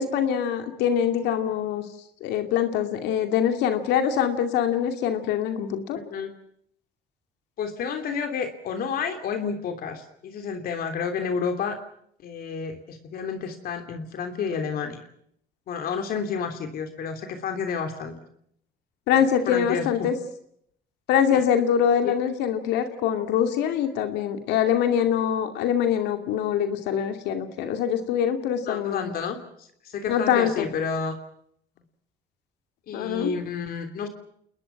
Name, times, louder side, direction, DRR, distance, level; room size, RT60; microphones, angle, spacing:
voice 1, 0.0-1.8 2.2-6.0 19.1-20.1 21.1-29.1 30.1-30.7 32.9-33.3, left 8 dB, 90° left, 7 dB, 2.4 m, -24 dB
voice 2, 7.6-11.8 12.2-15.0 15.7-18.2 19.5-19.9 21.3-21.4 22.0-22.1 28.7-31.1 32.9-34.1, left 6 dB, 60° left, 7 dB, 3.1 m, -30 dB
29.0 x 20.5 x 5.9 m, 0.68 s
cardioid pair, 110°, 17 cm